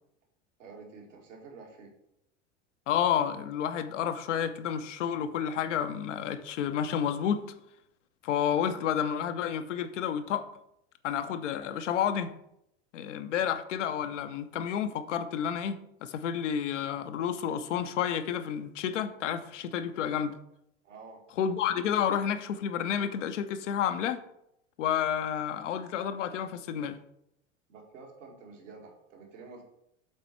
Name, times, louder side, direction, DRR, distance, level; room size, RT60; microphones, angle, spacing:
voice 1, 0.6-1.9 20.8-21.2 27.7-29.6, right 4 dB, 75° right, -1 dB, 2.1 m, -49 dB
voice 2, 2.9-7.5 8.2-10.5 11.0-12.3 12.9-20.4 21.4-24.2 24.8-27.0, left 8 dB, 70° left, 9 dB, 0.7 m, -30 dB
7.5 x 4.1 x 4.5 m, 0.79 s
hypercardioid pair, 85°, 38 cm